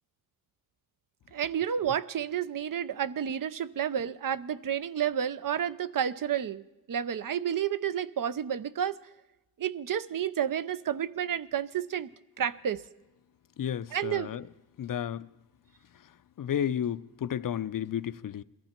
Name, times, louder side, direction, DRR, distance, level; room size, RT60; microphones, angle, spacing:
voice 1, 1.3-9.0 9.6-12.1 12.4-12.8 13.9-14.3, right 9 dB, 60° right, 0.6 m, -30 dB
voice 2, 13.6-14.4 14.8-15.3 16.4-18.4, left 9 dB, 60° left, 0.5 m, -32 dB
21.5 x 15.0 x 4.4 m
wide cardioid pair, 100°, 38 cm